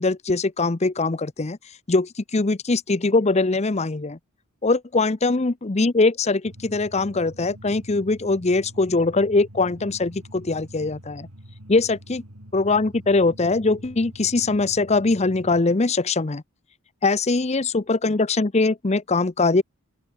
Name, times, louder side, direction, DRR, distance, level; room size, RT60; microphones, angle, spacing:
voice 1, 0.0-1.6 1.9-4.2 4.6-11.3 11.7-12.2 12.5-16.4 17.0-19.6, left 3 dB, 30° left, 0.6 m, -22 dB
sound 1, 6.4-15.6, equal, 85° right, 5.7 m, -45 dB
open air
head